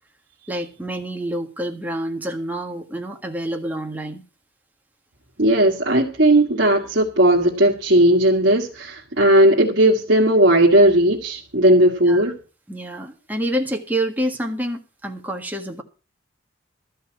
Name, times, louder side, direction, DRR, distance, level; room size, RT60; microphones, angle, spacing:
voice 1, 0.5-4.2 12.0-12.3 12.7-15.8, right 1 dB, 10° right, 1.5 m, -27 dB
voice 2, 5.4-12.3, right 1 dB, 65° right, 1.7 m, -16 dB
13.5 x 5.4 x 8.7 m
head